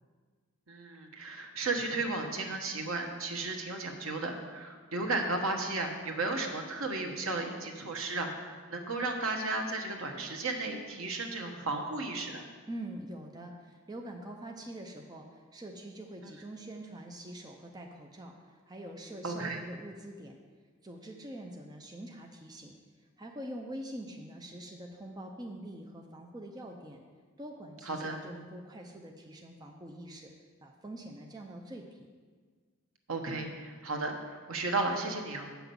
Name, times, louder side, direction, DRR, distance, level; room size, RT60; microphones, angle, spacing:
voice 1, 0.7-12.4 19.2-19.6 27.9-28.2 33.1-35.5, right 3 dB, 70° right, 3 dB, 1.2 m, -34 dB
voice 2, 12.7-20.4 20.8-22.7 23.2-27.0 27.4-30.3 30.6-32.1, right 1 dB, 20° right, 1 dB, 0.6 m, -44 dB
8.3 x 5.9 x 6.9 m, 1.5 s
head